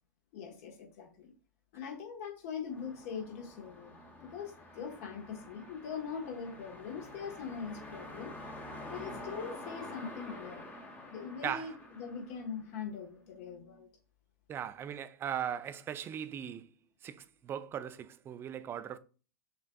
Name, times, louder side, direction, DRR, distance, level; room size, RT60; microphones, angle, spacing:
voice 1, 0.3-1.3 1.7-3.9 4.2-8.3 8.9-10.7 11.1-13.9, left 6 dB, 55° left, 1.2 m, -42 dB
sound 1, 2.7-12.9, left 1 dB, 15° left, 0.9 m, -48 dB
voice 2, 11.4-11.8 14.5-16.7 17.0-19.0, right 9 dB, 25° right, 0.3 m, -38 dB
6.3 x 2.5 x 2.3 m
hypercardioid pair, 105°, 10 cm